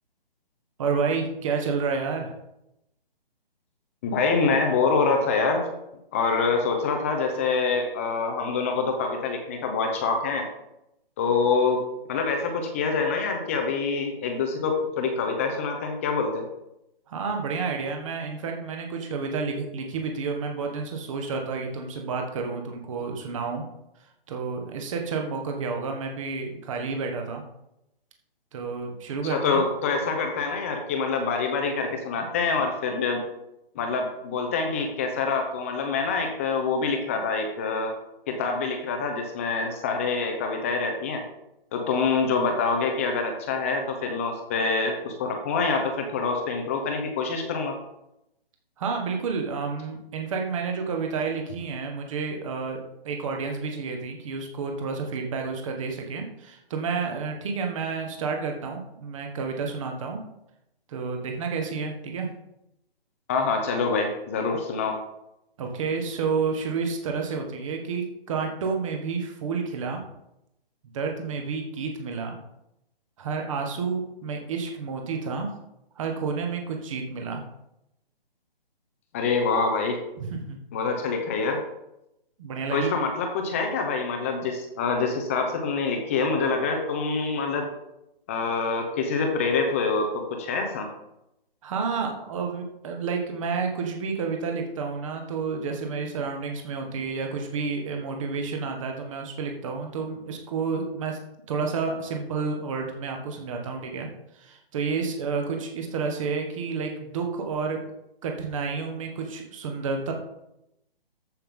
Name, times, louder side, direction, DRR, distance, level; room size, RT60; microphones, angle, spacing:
voice 1, 0.8-2.3 17.1-23.6 24.3-27.4 28.5-29.6 48.8-60.2 60.9-62.3 65.6-70.0 70.8-72.4 73.2-75.5 76.0-77.4 80.2-80.6 82.4-82.9 91.6-101.2 101.5-104.1 104.3-107.8 108.2-110.1, right 5 dB, 35° right, 3 dB, 1.4 m, -30 dB
voice 2, 4.0-5.6 6.1-10.4 11.2-11.8 12.1-16.4 29.2-33.2 33.8-37.9 38.3-41.2 41.7-47.8 63.3-65.0 79.1-80.0 80.7-81.6 82.7-87.7 88.3-90.9, left 4 dB, 15° left, 4 dB, 0.6 m, -26 dB
14.0 x 5.6 x 3.7 m, 0.86 s
hypercardioid pair, 160°, 30 cm